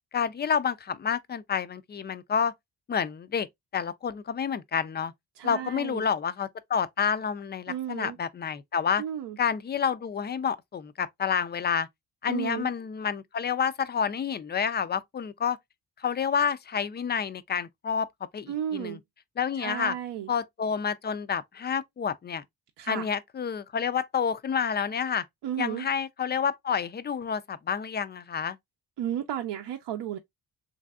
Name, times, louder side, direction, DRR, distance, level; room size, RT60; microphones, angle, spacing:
voice 1, 0.1-2.5 2.9-3.5 3.7-5.1 5.4-9.0 9.4-11.9 12.2-15.6 16.0-18.1 18.3-19.0 19.4-20.0 20.3-22.4 22.9-25.2 25.6-28.6, left 7 dB, 25° left, 0.3 m, -29 dB
voice 2, 5.4-6.1 7.7-8.2 9.0-9.4 12.3-12.7 18.5-19.0 19.6-20.3 22.8-23.1 25.4-25.9 29.0-30.2, right 10 dB, 70° right, 0.6 m, -33 dB
3.2 x 2.6 x 2.3 m
supercardioid pair, 55°, 43 cm